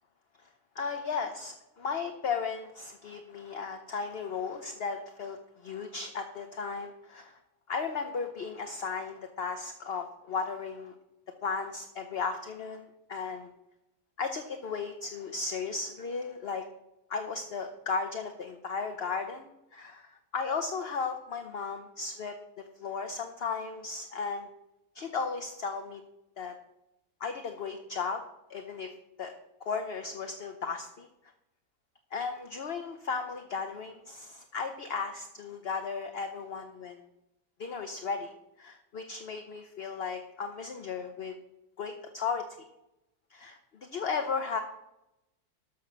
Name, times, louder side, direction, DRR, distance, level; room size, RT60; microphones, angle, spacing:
voice 1, 0.7-7.4 7.7-10.9 11.4-13.5 14.2-16.6 17.1-24.5 24.9-26.0 26.4-26.5 27.2-28.2 28.5-28.9 29.2-29.3 29.6-31.1 32.1-37.0 37.6-38.3 38.6-41.3 41.8-42.5 43.3-44.6, left 5 dB, 45° left, 6 dB, 1.0 m, -35 dB
12.5 x 5.9 x 6.3 m, 0.88 s
omnidirectional pair, 1.6 m